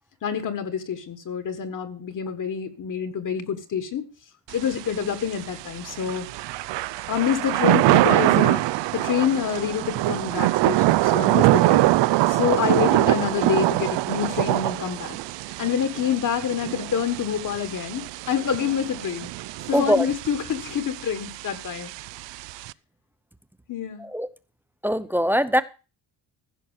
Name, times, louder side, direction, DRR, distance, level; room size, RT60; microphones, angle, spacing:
voice 1, 0.2-4.1 4.5-6.3 7.1-11.9 12.3-15.2 15.6-19.3 19.7-21.9 23.7-24.1, left 8 dB, 45° left, 1.6 m, -27 dB
Thunder / Rain, 4.5-22.7, right 17 dB, 75° right, 0.5 m, -24 dB
voice 2, 19.7-20.1 24.1-24.3 24.8-25.6, equal, 5° right, 0.6 m, -21 dB
15.5 x 6.0 x 7.3 m
cardioid pair, 155°, 43 cm